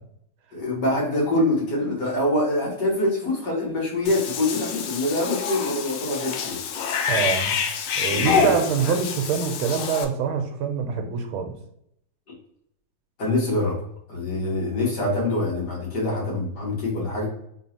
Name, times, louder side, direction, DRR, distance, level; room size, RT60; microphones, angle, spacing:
voice 1, 0.5-6.6 8.1-8.5 13.2-13.8 14.1-17.3, left 1 dB, 55° left, -4 dB, 1.7 m, -25 dB
Cat / Bathtub (filling or washing), 4.1-10.1, left 6 dB, 85° left, 0.9 m, -27 dB
voice 2, 7.1-7.6 8.0-11.5, right 6 dB, 85° right, 5 dB, 1.5 m, -25 dB
3.7 x 3.0 x 2.7 m, 0.73 s
omnidirectional pair, 2.3 m